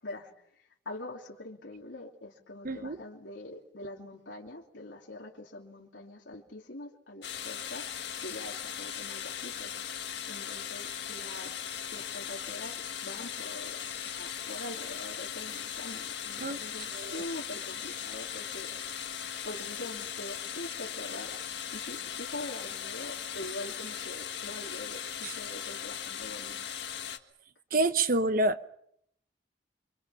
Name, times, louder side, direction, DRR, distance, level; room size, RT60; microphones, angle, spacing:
voice 1, 0.0-7.8 8.2-13.8 14.0-19.1 19.4-26.5, left 1 dB, 85° left, 3.0 m, -44 dB
voice 2, 2.6-3.0 16.4-16.6 16.9-17.2 25.2-25.3 27.7-28.7, right 2 dB, 50° right, 0.9 m, -28 dB
sound 1, 7.2-27.2, left 9 dB, 65° left, 1.8 m, -38 dB
29.5 x 25.0 x 5.8 m
head